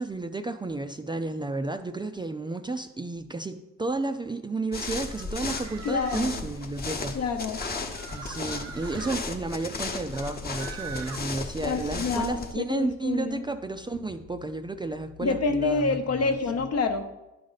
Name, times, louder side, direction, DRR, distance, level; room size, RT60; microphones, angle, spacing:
voice 1, 0.0-7.2 8.1-16.3, right 2 dB, 15° right, 7 dB, 0.4 m, -32 dB
sound 1, 4.7-12.5, left 3 dB, 30° left, 1.0 m, -35 dB
sound 2, 5.1-6.4 7.6-9.2 10.1-11.2, right 6 dB, 60° right, 0.8 m, -42 dB
voice 2, 5.8-6.4 7.1-7.6 11.6-13.4 15.2-17.0, left 4 dB, 55° left, 7 dB, 0.9 m, -27 dB
11.0 x 5.1 x 4.0 m, 1.0 s
cardioid pair, 90°, 30 cm